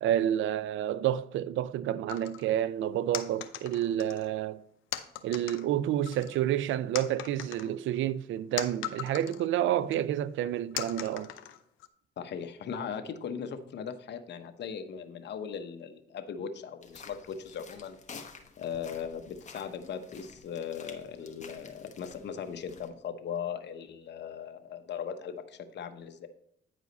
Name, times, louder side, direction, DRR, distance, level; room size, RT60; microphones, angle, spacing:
voice 1, 0.0-4.6 5.2-11.3, right 11 dB, 75° right, 0.4 m, -29 dB
sound 1, 2.1-2.5 3.1-4.3 4.9-5.7 6.1-6.6 6.9-9.5 9.9-10.0 10.8-11.9, left 12 dB, 85° left, 0.6 m, -39 dB
voice 2, 12.2-18.0 18.6-26.3, left 7 dB, 60° left, 0.9 m, -38 dB
sound 2, 16.8-22.9, left 5 dB, 35° left, 1.1 m, -50 dB
9.2 x 4.9 x 4.0 m
cardioid pair, 90°, 20 cm